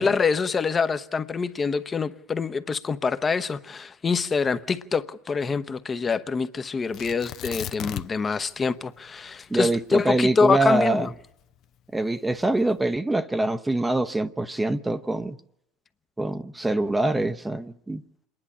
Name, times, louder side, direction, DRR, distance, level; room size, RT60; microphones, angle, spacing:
voice 1, 0.0-11.1, left 5 dB, 25° left, 1.0 m, -25 dB
Tearing, 6.9-8.3 8.6-8.7 9.3-11.6 12.3-12.8, left 12 dB, 55° left, 0.8 m, -36 dB
voice 2, 9.5-11.1 11.9-15.4 16.2-18.0, right 2 dB, 10° right, 0.9 m, -24 dB
27.0 x 11.0 x 10.0 m
hypercardioid pair, 90°, 0 cm